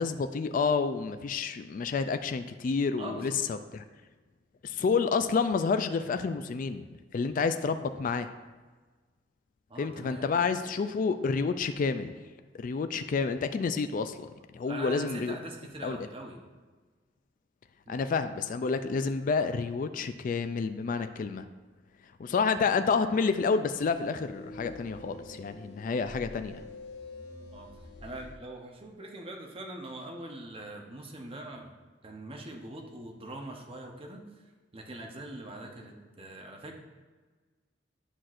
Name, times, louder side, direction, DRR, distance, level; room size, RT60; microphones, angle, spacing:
voice 1, 0.0-3.8 4.6-6.9 7.1-8.3 9.8-12.3 12.5-15.4 15.8-16.0 17.9-21.4 22.2-26.6, left 5 dB, 50° left, 9 dB, 0.3 m, -29 dB
voice 2, 3.0-3.4 9.7-10.4 14.6-16.4 17.9-18.1 27.5-27.7 28.0-31.7 32.0-34.5 34.7-36.8, right 1 dB, 30° right, 1 dB, 0.9 m, -42 dB
sound 1, 23.7-28.4, left 2 dB, 75° left, 0.8 m, -46 dB
10.0 x 5.8 x 2.5 m, 1.4 s
head